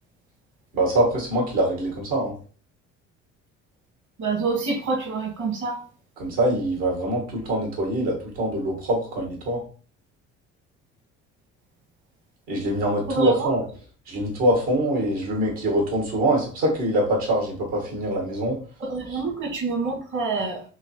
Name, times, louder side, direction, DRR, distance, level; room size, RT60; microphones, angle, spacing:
voice 1, 0.7-2.3 6.2-9.6 12.5-13.6 14.1-18.6 19.1-19.2, right 1 dB, 75° right, -1 dB, 1.7 m, -24 dB
voice 2, 4.2-5.8 13.1-13.6 18.8-20.6, right 3 dB, 50° right, 0 dB, 1.6 m, -26 dB
3.8 x 3.1 x 2.7 m, 0.41 s
hypercardioid pair, 50°, 37 cm